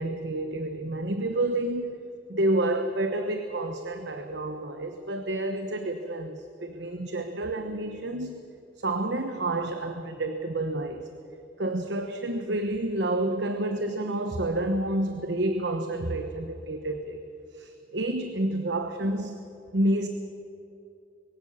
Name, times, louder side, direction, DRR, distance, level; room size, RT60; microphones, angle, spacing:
voice 1, 0.0-2.0 2.3-8.4 8.8-11.1 11.6-17.2 17.6-19.3 19.7-20.1, right 1 dB, 75° right, 7 dB, 1.1 m, -29 dB
22.5 x 16.5 x 7.2 m, 2.7 s
head